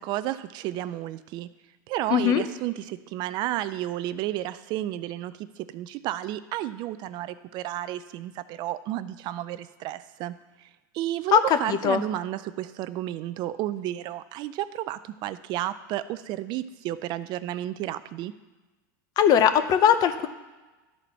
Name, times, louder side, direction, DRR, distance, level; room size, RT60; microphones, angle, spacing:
voice 1, 0.0-1.5 1.9-18.3, right 14 dB, 45° right, 14 dB, 0.3 m, -32 dB
voice 2, 2.1-2.4 11.3-12.0 19.2-20.3, left 8 dB, 40° left, 10 dB, 0.6 m, -20 dB
12.5 x 4.1 x 4.2 m, 1.2 s
supercardioid pair, 120°, 11 cm